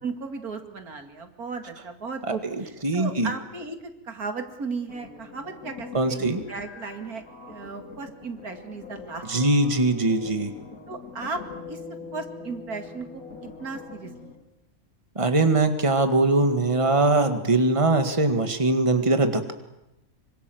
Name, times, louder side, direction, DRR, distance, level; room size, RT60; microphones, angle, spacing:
voice 1, 0.0-3.8 4.0-6.2 6.5-9.4 10.9-11.4 11.7-11.8 12.1-14.4, right 4 dB, 85° right, 6 dB, 2.8 m, -35 dB
voice 2, 2.8-3.3 5.9-6.4 9.3-10.5 15.2-19.5, right 2 dB, 20° right, 8 dB, 1.9 m, -21 dB
sound 1, 4.9-14.4, left 4 dB, 75° left, 3.1 m, -43 dB
26.0 x 25.0 x 7.9 m, 0.92 s
omnidirectional pair, 1.5 m